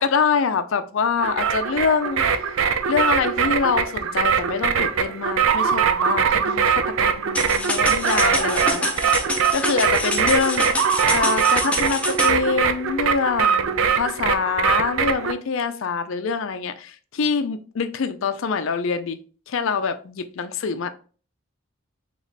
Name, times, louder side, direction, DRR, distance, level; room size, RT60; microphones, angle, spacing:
voice 1, 0.0-2.6 2.9-8.9 9.5-19.2 19.5-20.9, left 5 dB, 65° left, 0.4 m, -25 dB
sound 1, 1.2-15.3, right 7 dB, 70° right, 0.4 m, -22 dB
sound 2, 7.3-12.3, left 2 dB, 5° left, 0.4 m, -27 dB
4.0 x 3.0 x 3.2 m
head